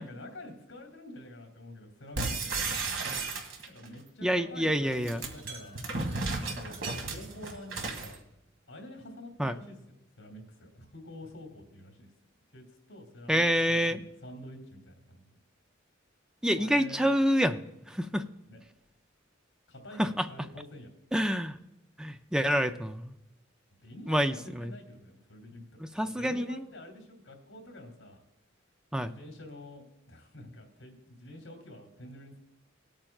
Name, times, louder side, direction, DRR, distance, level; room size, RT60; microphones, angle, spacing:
voice 1, 0.0-3.0 3.7-5.8 6.5-8.2 8.7-12.1 12.5-15.2 16.6-17.1 18.5-18.6 19.7-20.9 23.8-25.6 26.0-28.2 29.0-32.4, left 1 dB, 75° left, 2 dB, 3.0 m, -48 dB
sound 1, 2.2-3.9 4.9-8.2, right 3 dB, 70° right, 1.7 m, -34 dB
voice 2, 4.2-5.2 9.4-9.6 13.3-14.0 16.4-18.3 20.0-20.3 21.1-21.6 22.0-23.1 24.1-24.7 26.0-26.6 28.9-29.1, equal, 5° right, 8 dB, 0.4 m, -27 dB
19.5 x 8.8 x 2.4 m, 0.91 s
head